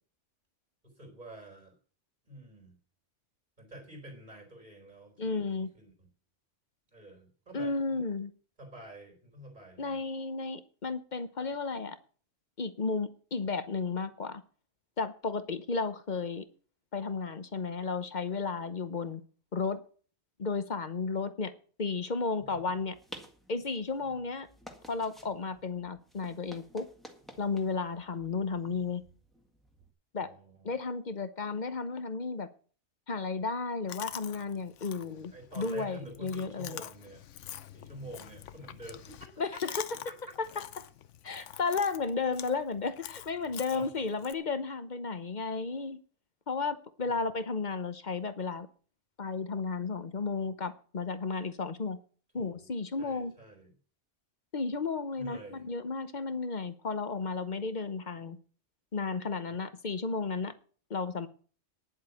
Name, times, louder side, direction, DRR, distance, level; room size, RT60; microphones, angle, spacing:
voice 1, 0.8-1.7 2.2-2.8 3.6-5.9 6.9-8.1 8.6-10.0 22.4-22.6 30.2-30.7 35.3-37.2 37.7-39.8 40.1-40.2 43.7-43.9 47.0-47.3 52.3-52.7 53.0-53.7 55.2-55.6, right 2 dB, 35° right, 2 dB, 4.6 m, -48 dB
voice 2, 5.2-5.7 7.5-8.3 9.8-12.0 12.6-14.4 15.0-16.5 16.9-19.2 19.5-19.8 20.4-21.5 21.8-23.0 23.5-24.5 24.9-26.9 27.4-29.0 30.1-30.3 30.6-32.5 33.1-36.8 39.4-39.8 41.2-46.0 46.5-48.7 49.2-52.0 52.3-53.3 54.5-58.4 58.9-60.5 60.9-61.3, left 4 dB, 40° left, 11 dB, 1.0 m, -33 dB
sound 1, 22.4-29.9, equal, ahead, 1.7 m, -53 dB
Chewing mastication, 33.9-44.3, left 10 dB, 85° left, 1.0 m, -46 dB
10.5 x 8.0 x 7.1 m, 0.41 s
omnidirectional pair, 1.2 m